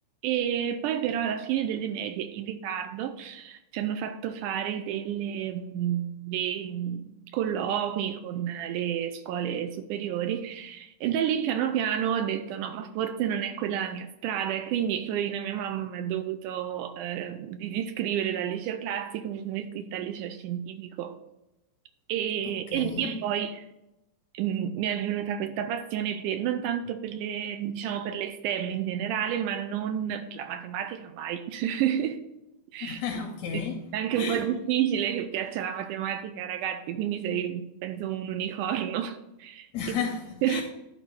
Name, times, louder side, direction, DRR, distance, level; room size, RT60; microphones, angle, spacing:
voice 1, 0.2-21.2 22.1-23.7 24.3-32.2 32.7-33.0 33.5-33.6 33.9-39.7 40.4-40.6, right 9 dB, 80° right, 1.9 m, -30 dB
voice 2, 22.7-23.1 32.8-33.8 34.1-34.4 39.7-40.6, left 6 dB, 75° left, 1.8 m, -32 dB
11.5 x 4.2 x 4.3 m
omnidirectional pair, 3.9 m